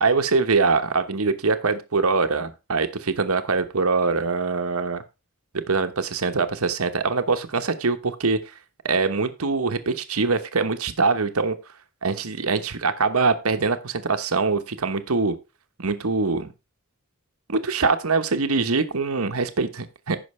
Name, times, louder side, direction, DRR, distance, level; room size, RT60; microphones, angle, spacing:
voice 1, 0.0-5.0 5.5-8.4 8.8-11.6 12.0-15.4 15.8-16.5 17.5-20.2, right 4 dB, 85° right, 9 dB, 1.1 m, -23 dB
15.5 x 6.0 x 3.2 m, 0.27 s
head